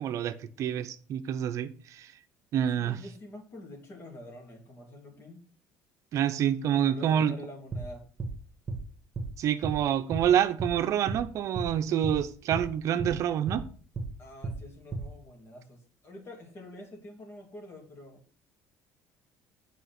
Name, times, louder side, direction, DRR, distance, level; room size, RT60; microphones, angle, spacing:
voice 1, 0.0-2.1 2.5-3.0 6.1-7.3 9.4-13.6, right 10 dB, 55° right, 0.7 m, -27 dB
voice 2, 2.7-5.4 6.7-8.1 14.2-18.2, left 1 dB, 40° left, 2.8 m, -46 dB
sound 1, 7.7-7.9 8.2-8.4 8.7-8.8 9.2-9.3 9.6-9.8 10.1-10.3 10.6-10.8 11.1-11.2 11.5-11.7 12.0-12.2 12.5-12.7 13.0-13.2 13.5-13.6 14.0-14.1 14.4-14.6 14.9-15.1, right 3 dB, 25° right, 1.5 m, -34 dB
8.2 x 5.0 x 5.9 m
cardioid pair, 125°, 6 cm